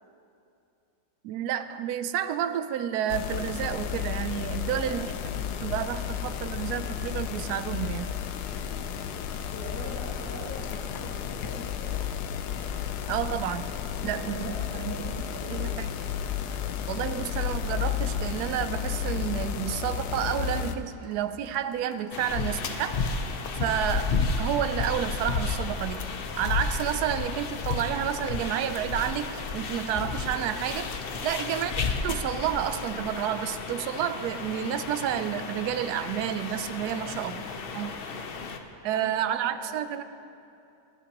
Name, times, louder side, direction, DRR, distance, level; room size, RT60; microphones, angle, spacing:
voice 1, 1.2-8.1 13.1-13.7 14.0-15.2 15.5-15.9 16.9-23.0 23.6-24.1 24.4-26.1 26.4-30.9 31.2-31.7 32.0-37.4 37.7-37.9 38.8-40.0, right 10 dB, 80° right, 11 dB, 1.1 m, -30 dB
sound 1, 3.1-20.7, left 9 dB, 85° left, 1.2 m, -32 dB
voice 2, 4.6-5.1 8.5-8.9 9.5-12.0 14.0-15.8 31.2-31.6 36.8-38.1 38.9-39.8, equal, 10° left, -8 dB, 1.6 m, -44 dB
sound 2, 9.3-17.2 17.5-17.6 17.8-23.5, equal, 30° right, 1.9 m, -55 dB
sound 3, 22.1-38.6, left 4 dB, 55° left, 0.7 m, -32 dB
19.5 x 11.5 x 2.9 m, 2.7 s
omnidirectional pair, 1.7 m